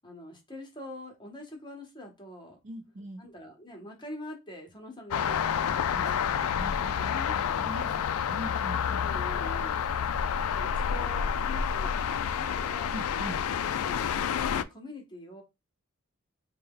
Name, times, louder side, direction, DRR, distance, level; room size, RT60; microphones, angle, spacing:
voice 1, 0.0-2.6 3.2-6.4 6.9-7.8 8.9-10.2 10.5-12.9 13.6-15.4, left 1 dB, 20° left, 1.0 m, -45 dB
voice 2, 2.6-3.2 5.9-9.1 12.9-13.4, right 1 dB, 35° right, 0.4 m, -42 dB
sound 1, 5.1-14.6, left 8 dB, 85° left, 0.3 m, -29 dB
4.1 x 2.3 x 3.7 m
head